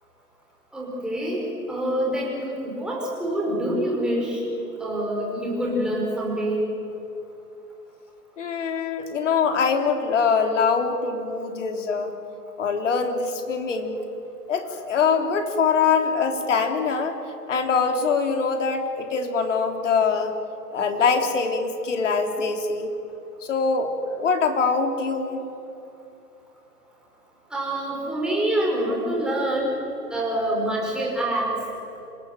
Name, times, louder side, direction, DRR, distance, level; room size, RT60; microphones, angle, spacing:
voice 1, 0.7-4.4 4.8-6.6 27.5-29.8 30.1-31.5, right 1 dB, ahead, -4 dB, 5.4 m, -26 dB
voice 2, 8.4-12.1 12.6-14.0 14.5-17.2 17.5-20.3 20.7-22.9 23.4-25.4, left 5 dB, 50° left, 5 dB, 3.6 m, -23 dB
27.0 x 20.0 x 9.3 m, 2.8 s
figure-of-eight pair, 145°, 48 cm